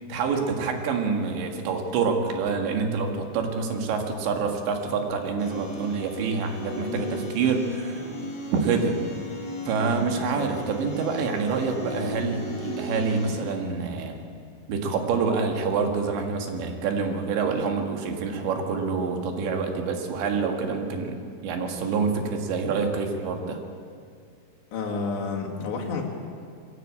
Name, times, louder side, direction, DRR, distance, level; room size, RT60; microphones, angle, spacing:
voice 1, 0.1-8.1 8.5-8.9 9.7-14.2 14.7-23.6, right 5 dB, 80° right, 3 dB, 4.1 m, -27 dB
sound 1, 5.4-13.4, left 1 dB, 35° left, 4.8 m, -36 dB
voice 2, 9.8-10.5 24.7-26.0, left 4 dB, 75° left, 0 dB, 4.5 m, -31 dB
22.5 x 15.5 x 8.7 m, 2.2 s
omnidirectional pair, 5.1 m